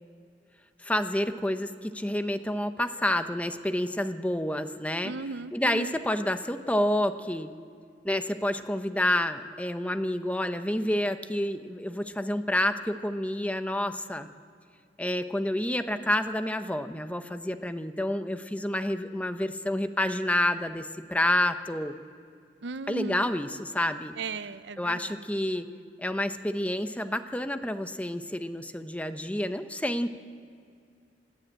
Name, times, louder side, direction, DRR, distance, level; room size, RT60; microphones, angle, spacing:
voice 1, 0.8-5.1 5.5-7.5 8.0-14.3 15.0-21.9 22.9-24.1 24.8-25.7 26.0-30.2, left 1 dB, 10° left, 9 dB, 0.8 m, -29 dB
voice 2, 5.0-6.0 22.6-23.3 24.2-25.1, right 4 dB, 85° right, 14 dB, 0.6 m, -37 dB
28.0 x 10.5 x 8.8 m, 2.3 s
head